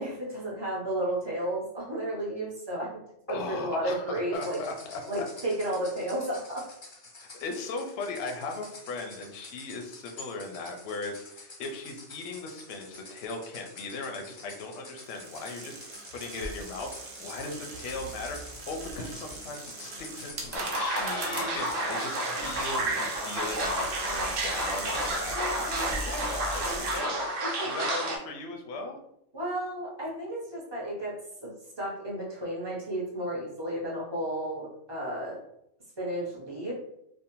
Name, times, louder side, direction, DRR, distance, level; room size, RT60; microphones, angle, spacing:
voice 1, 0.0-2.9 3.3-4.6 5.1-6.7 27.6-27.7 29.3-31.1 31.4-35.4 36.0-36.7, right 1 dB, 25° right, -5 dB, 0.7 m, -32 dB
voice 2, 3.3-5.2 7.2-15.8 16.1-29.0, left 3 dB, 65° left, 3 dB, 0.7 m, -38 dB
sound 1, 4.3-22.0, left 3 dB, 45° left, 0.3 m, -49 dB
sound 2, 15.0-27.0, right 2 dB, 65° right, 0.8 m, -40 dB
sound 3, 20.5-28.2, right 1 dB, 90° right, 1.0 m, -31 dB
2.6 x 2.1 x 2.9 m, 0.78 s
omnidirectional pair, 1.3 m